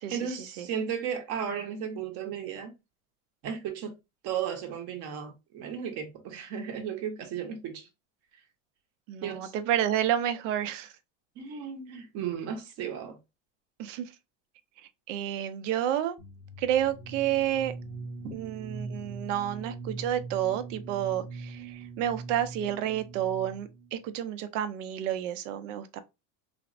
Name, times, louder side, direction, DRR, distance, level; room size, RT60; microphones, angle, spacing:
voice 1, 0.1-2.7 3.4-3.9 4.2-7.9 9.2-9.5 11.4-13.2 18.2-18.3, right 8 dB, 40° right, 0.8 m, -35 dB
voice 2, 9.1-10.9 13.8-14.1 15.1-16.2 16.6-17.7 18.3-26.0, right 11 dB, 80° right, 0.6 m, -30 dB
sound 1, 16.2-23.9, right 3 dB, 10° right, 0.7 m, -42 dB
3.3 x 2.0 x 2.5 m
supercardioid pair, 150°, 37 cm